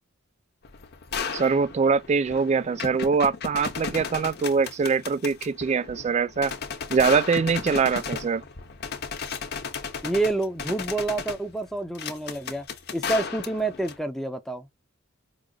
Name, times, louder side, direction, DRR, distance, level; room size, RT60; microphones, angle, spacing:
sound 1, 0.6-14.0, left 5 dB, 50° left, 0.8 m, -35 dB
voice 1, 1.3-6.5 6.9-8.4, right 5 dB, 35° right, 0.3 m, -23 dB
voice 2, 10.0-12.7 12.9-14.7, right 2 dB, ahead, 0.7 m, -28 dB
4.9 x 2.5 x 2.3 m
head